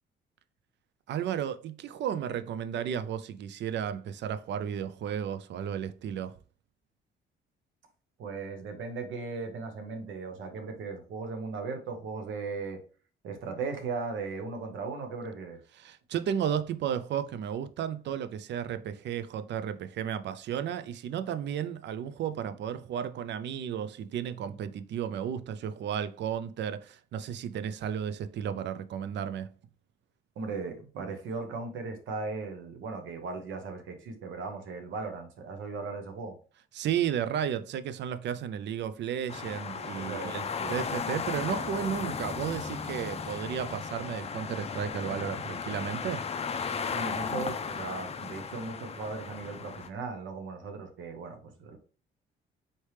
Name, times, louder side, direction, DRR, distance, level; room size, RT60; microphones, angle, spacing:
voice 1, 1.1-6.3 15.8-29.5 36.7-46.3, right 9 dB, 65° right, 0.5 m, -33 dB
voice 2, 8.2-12.8 13.2-15.6 30.4-36.4 39.9-40.3 40.6-40.8 46.9-51.8, right 4 dB, 80° right, 1.0 m, -37 dB
sound 1, 39.3-49.9, left 6 dB, 30° left, 0.5 m, -35 dB
4.3 x 3.2 x 3.2 m
cardioid pair, 90°, 20 cm